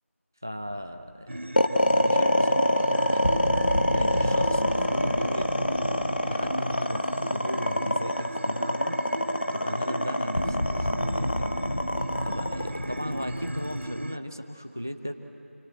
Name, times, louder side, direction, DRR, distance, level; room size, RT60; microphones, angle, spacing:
voice 1, 0.4-3.4 3.9-5.9 6.2-9.0 9.5-11.7 12.2-15.1, equal, 15° right, 7 dB, 0.6 m, -36 dB
sound 1, 0.8-1.6 3.2-8.3 8.6-8.8 10.3-14.1, left 1 dB, 70° left, 1.0 m, -34 dB
sound 2, 1.3-14.2, right 1 dB, 55° right, 0.8 m, -37 dB
sound 3, 1.6-13.8, left 1 dB, 40° left, 1.3 m, -25 dB
28.0 x 24.5 x 8.2 m, 2.6 s
figure-of-eight pair, 175°, 8 cm